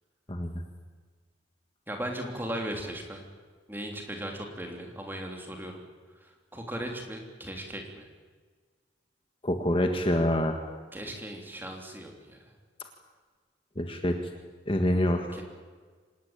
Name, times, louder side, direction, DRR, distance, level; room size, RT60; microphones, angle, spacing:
voice 1, 1.9-3.2 3.7-5.8 6.1-8.1 10.9-12.5 15.3-15.4, right 1 dB, 10° right, 2 dB, 3.4 m, -37 dB
voice 2, 9.4-10.6 13.8-14.2 14.7-15.4, left 1 dB, 30° left, 5 dB, 1.6 m, -26 dB
26.0 x 19.0 x 9.0 m, 1.5 s
head